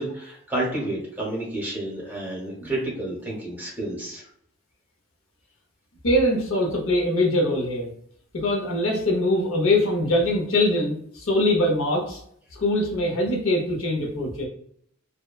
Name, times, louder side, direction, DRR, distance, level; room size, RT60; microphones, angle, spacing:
voice 1, 0.0-4.3, right 1 dB, 10° right, -4 dB, 0.8 m, -30 dB
voice 2, 6.0-7.9 8.3-12.2 12.5-14.5, left 1 dB, 70° left, 0 dB, 0.7 m, -23 dB
2.8 x 2.2 x 2.3 m, 0.67 s
head